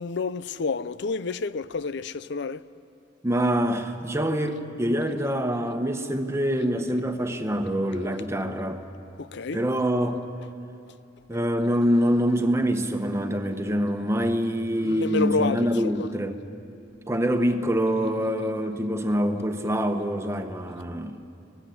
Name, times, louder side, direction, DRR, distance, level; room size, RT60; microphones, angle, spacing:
voice 1, 0.0-2.6 9.2-9.6 14.8-16.1, left 4 dB, 60° left, 0.6 m, -29 dB
voice 2, 3.2-8.8 9.5-10.2 11.3-16.3 17.1-21.2, equal, 15° right, 1.2 m, -25 dB
25.5 x 19.5 x 8.0 m
head